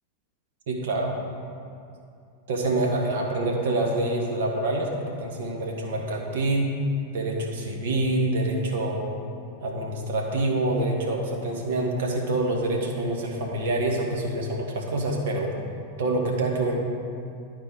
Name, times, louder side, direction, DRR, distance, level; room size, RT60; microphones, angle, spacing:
voice 1, 0.7-1.1 2.5-4.9 5.2-6.7 7.1-9.1 9.6-15.5 16.0-16.7, right 2 dB, 55° right, 0 dB, 1.3 m, -26 dB
11.5 x 4.4 x 4.6 m, 2.5 s
figure-of-eight pair, 90°, 0 cm